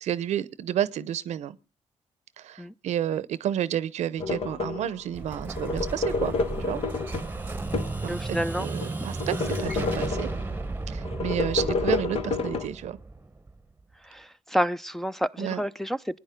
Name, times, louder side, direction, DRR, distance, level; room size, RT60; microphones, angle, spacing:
voice 1, 0.0-1.6 2.4-6.8 8.0-10.3 10.9-13.0 15.4-15.6, right 10 dB, 80° right, 0.8 m, -31 dB
sound 1, 4.2-5.0 5.5-8.1 8.5-10.5 11.0-12.7, left 4 dB, 55° left, 1.1 m, -29 dB
Explosion, 5.1-13.8, right 3 dB, 15° right, 1.0 m, -34 dB
voice 2, 8.1-8.7 9.0-9.1 14.0-16.2, equal, 5° left, 0.6 m, -29 dB
20.5 x 9.8 x 3.7 m
cardioid pair, 75°, 12 cm